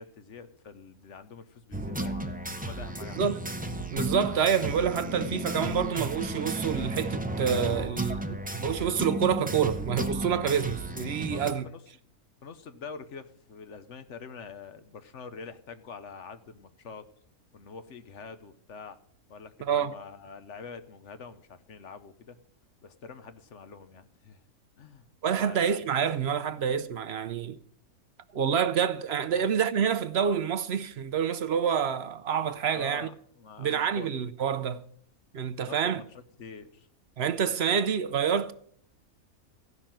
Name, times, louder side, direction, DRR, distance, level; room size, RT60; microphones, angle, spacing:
voice 1, 0.0-3.3 8.1-8.5 11.3-11.8 12.4-17.1 17.5-19.0 19.3-22.4 22.8-24.4 24.8-25.0 25.4-25.9 29.3-29.5 32.7-33.7 33.9-34.1 35.6-36.9, left 5 dB, 55° left, 1.1 m, -45 dB
sound 1, 1.7-11.5, right 1 dB, 10° right, 0.6 m, -33 dB
voice 2, 3.0-3.4 3.9-11.6 19.6-20.0 25.2-27.6 28.3-33.1 33.6-34.8 35.3-36.0 37.2-38.5, right 7 dB, 60° right, 0.7 m, -27 dB
15.0 x 5.8 x 9.0 m
omnidirectional pair, 1.6 m